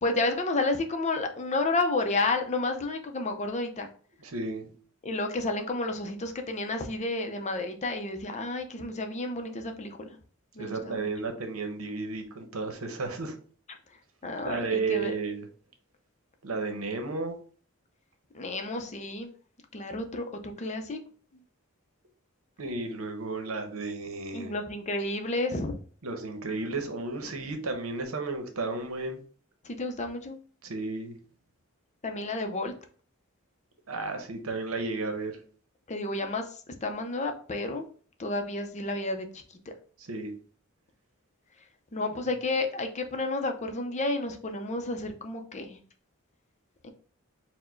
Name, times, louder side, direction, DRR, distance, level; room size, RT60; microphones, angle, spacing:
voice 1, 0.0-3.9 5.0-9.9 10.6-11.0 14.2-15.1 18.3-19.3 19.7-21.0 24.3-25.8 29.6-30.4 32.0-32.7 35.9-37.9 38.2-39.7 41.9-45.8 46.8-46.9, left 2 dB, 35° left, 0.5 m, -31 dB
voice 2, 4.2-4.7 10.6-13.4 14.4-15.4 16.4-17.4 22.6-24.5 26.0-29.2 30.6-31.1 33.9-35.4 40.0-40.3 42.1-42.2, right 3 dB, 85° right, 0.9 m, -33 dB
4.4 x 2.1 x 4.4 m
head